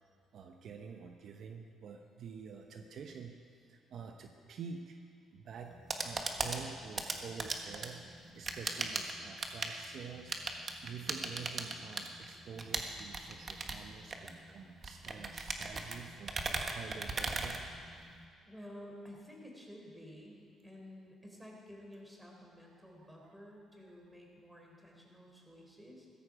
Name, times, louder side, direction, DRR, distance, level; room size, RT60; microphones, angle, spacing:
voice 1, 0.3-3.4 3.7-5.0 5.3-8.1 8.3-10.4 10.8-17.7 23.0-23.3, right 6 dB, 65° right, 4 dB, 0.9 m, -48 dB
sound 1, 5.6-18.3, right 3 dB, 35° right, 1.4 m, -39 dB
voice 2, 18.4-26.1, equal, 5° right, -1 dB, 3.6 m, -52 dB
16.0 x 13.5 x 4.9 m, 2.2 s
cardioid pair, 90°, 0 cm